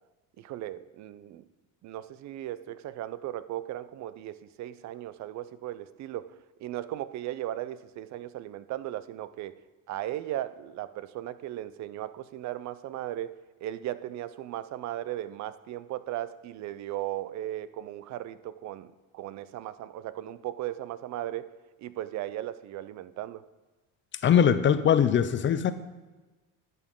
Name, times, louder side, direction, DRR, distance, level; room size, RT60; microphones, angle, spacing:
voice 1, 0.4-1.4 1.8-6.3 6.6-9.6 9.9-13.3 13.6-21.5 21.8-23.4, right 13 dB, 55° right, 14 dB, 0.6 m, -37 dB
voice 2, 24.2-25.7, left 8 dB, 35° left, 12 dB, 0.7 m, -21 dB
12.0 x 8.5 x 3.7 m, 1.2 s
cardioid pair, 115°, 33 cm